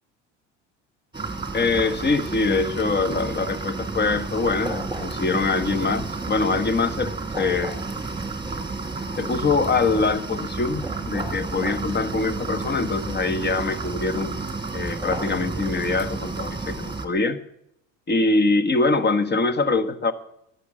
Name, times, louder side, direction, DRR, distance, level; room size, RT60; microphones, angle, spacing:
sound 1, 1.1-17.1, right 3 dB, 10° right, 2.0 m, -31 dB
voice 1, 1.5-7.8 9.2-14.4 14.7-17.4 18.1-20.1, left 3 dB, 25° left, 12 dB, 1.3 m, -23 dB
11.5 x 10.5 x 7.5 m, 0.78 s
hypercardioid pair, 75°, 37 cm